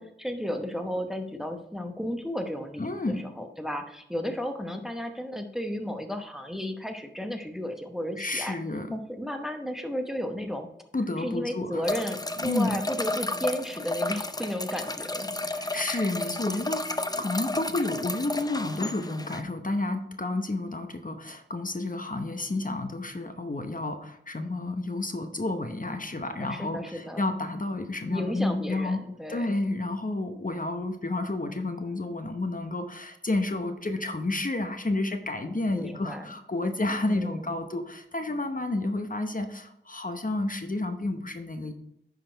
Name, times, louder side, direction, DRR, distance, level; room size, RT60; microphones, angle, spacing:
voice 1, 0.0-8.5 8.9-10.7 11.2-15.3 26.4-27.2 28.1-29.5 35.7-36.3 37.0-37.5, equal, ahead, 5 dB, 0.9 m, -33 dB
voice 2, 2.8-3.2 8.2-9.0 10.9-11.9 12.4-12.8 15.5-29.0 29.3-41.7, left 2 dB, 45° left, 6 dB, 0.8 m, -30 dB
sound 1, 11.8-19.4, left 2 dB, 20° left, 0.5 m, -32 dB
10.0 x 4.0 x 4.5 m, 0.78 s
wide cardioid pair, 40°, 20 cm